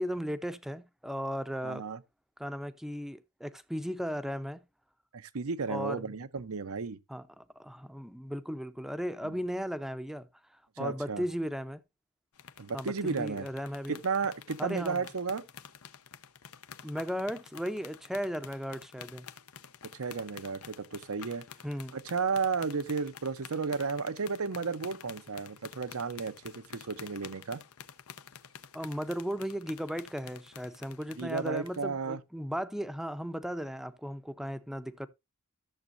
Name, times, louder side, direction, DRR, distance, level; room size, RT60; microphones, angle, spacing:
voice 1, 0.0-1.8 2.4-4.6 5.7-6.1 7.1-11.8 12.7-14.0 14.6-15.1 16.8-19.3 21.6-22.0 28.7-35.1, equal, ahead, 0.6 m, -36 dB
voice 2, 1.6-2.0 5.1-7.0 9.2-9.4 10.8-11.2 12.6-13.5 13.9-15.4 19.9-21.4 21.9-27.6 31.2-32.2, right 5 dB, 75° right, 0.7 m, -33 dB
sound 1, 12.3-31.8, left 8 dB, 80° left, 0.8 m, -50 dB
14.0 x 7.2 x 2.5 m
head